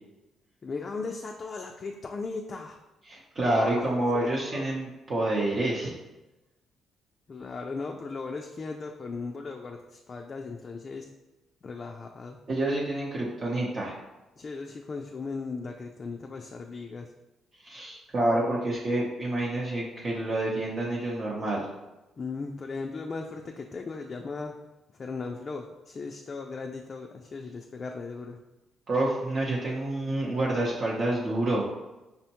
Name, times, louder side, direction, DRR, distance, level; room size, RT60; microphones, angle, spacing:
voice 1, 0.6-2.8 3.4-4.7 7.3-11.1 11.6-12.4 14.4-17.1 22.2-24.6 24.9-28.4, left 4 dB, 40° left, 2 dB, 0.3 m, -37 dB
voice 2, 3.1-5.9 12.5-14.0 17.6-21.7 28.9-31.6, right 1 dB, 40° right, -5 dB, 0.7 m, -28 dB
5.3 x 2.1 x 2.8 m, 1.0 s
cardioid pair, 90°, 0 cm